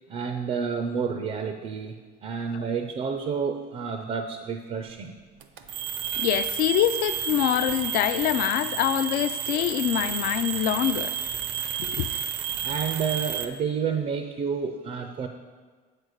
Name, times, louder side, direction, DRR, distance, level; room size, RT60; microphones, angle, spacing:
voice 1, 0.1-5.1 12.6-15.3, right 6 dB, 30° right, 0.5 m, -30 dB
sound 1, 5.4-13.5, right 9 dB, 75° right, 0.7 m, -31 dB
voice 2, 6.2-11.2 11.8-12.1, left 12 dB, 50° left, 0.4 m, -25 dB
8.3 x 4.4 x 6.4 m
cardioid pair, 140°, 20 cm